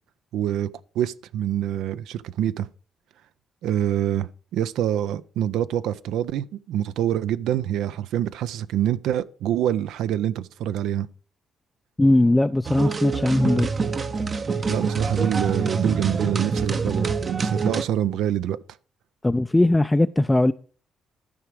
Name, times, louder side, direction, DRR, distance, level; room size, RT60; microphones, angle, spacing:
voice 1, 0.3-0.7 1.0-2.7 3.6-11.1 14.7-18.6, right 11 dB, 85° right, 0.4 m, -26 dB
voice 2, 12.0-13.7 19.2-20.5, left 1 dB, 10° left, 0.3 m, -19 dB
sound 1, 12.6-17.8, right 4 dB, 40° right, 0.7 m, -26 dB
12.5 x 4.9 x 4.7 m
cardioid pair, 90°, 0 cm